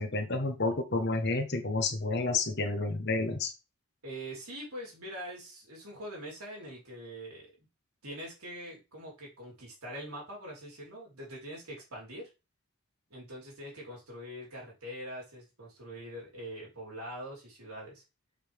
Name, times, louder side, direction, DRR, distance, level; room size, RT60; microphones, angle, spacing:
voice 1, 0.0-3.5, left 3 dB, 50° left, 6 dB, 1.3 m, -30 dB
voice 2, 4.0-7.5 8.0-12.3 13.1-18.0, equal, 85° right, -3 dB, 4.5 m, -43 dB
6.7 x 5.7 x 3.6 m, 0.28 s
head